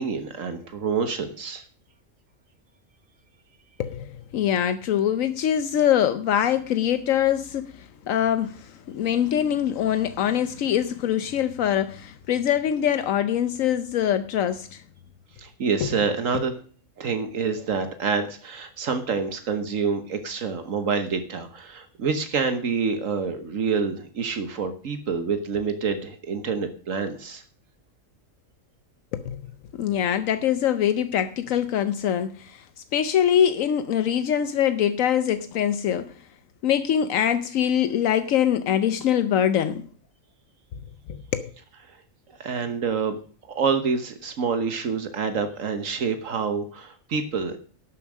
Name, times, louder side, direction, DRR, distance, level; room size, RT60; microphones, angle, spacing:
voice 1, 0.0-1.6 15.4-16.6 17.0-27.4 41.9-42.0 42.4-43.2 43.5-47.6, right 5 dB, 75° right, 1.5 m, -27 dB
voice 2, 3.8-14.8 15.8-15.9 16.3-16.4 29.1-29.4 29.7-32.6 32.9-36.1 36.6-39.9 41.1-41.5, left 10 dB, 80° left, 1.1 m, -23 dB
11.5 x 7.2 x 6.3 m
omnidirectional pair, 1.4 m